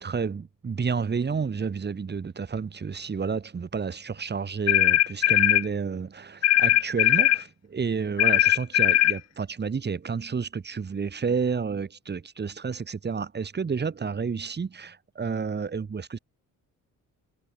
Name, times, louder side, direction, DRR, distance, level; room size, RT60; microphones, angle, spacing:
voice 1, 0.0-16.2, right 5 dB, 30° right, 6.7 m, -30 dB
sound 1, 4.7-5.7 6.4-7.4 8.2-9.2, left 14 dB, 55° left, 0.5 m, -20 dB
cardioid pair, 155°, 32 cm